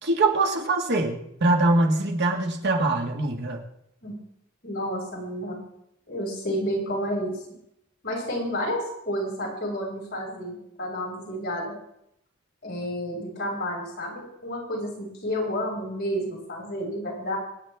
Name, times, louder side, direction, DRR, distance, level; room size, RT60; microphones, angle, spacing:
voice 1, 0.0-3.6, right 2 dB, 55° right, 2 dB, 1.9 m, -23 dB
voice 2, 4.6-5.6 6.1-7.4 8.0-11.7 12.6-17.4, equal, 50° left, -2 dB, 6.1 m, -30 dB
25.5 x 9.6 x 3.6 m, 0.77 s
head